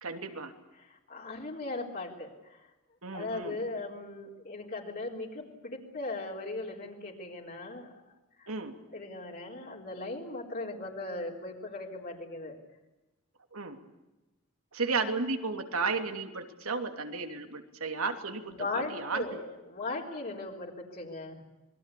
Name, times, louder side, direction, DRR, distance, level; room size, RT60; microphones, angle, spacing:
voice 1, 0.0-0.5 3.0-3.6 8.5-8.7 13.5-13.8 14.7-19.2, right 4 dB, 85° right, 5 dB, 2.9 m, -33 dB
voice 2, 0.8-2.6 3.1-8.0 8.4-8.5 8.9-12.6 18.4-21.4, left 2 dB, 45° left, -2 dB, 4.0 m, -38 dB
26.5 x 21.5 x 8.5 m, 1.0 s
head